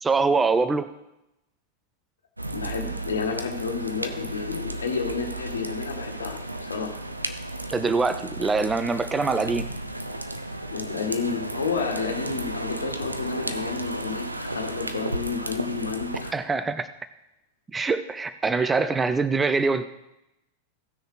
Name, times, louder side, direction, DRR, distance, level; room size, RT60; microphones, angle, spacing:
voice 1, 0.0-0.9 7.7-9.6 16.3-16.9 17.7-19.8, right 4 dB, 15° right, 12 dB, 0.5 m, -24 dB
sound 1, 2.4-16.3, right 2 dB, 85° right, 0.7 m, -33 dB
voice 2, 2.5-7.0 10.7-16.3 18.6-18.7, left 5 dB, 70° left, 4 dB, 1.7 m, -31 dB
16.0 x 6.4 x 4.9 m, 0.90 s
figure-of-eight pair, 90°, 0 cm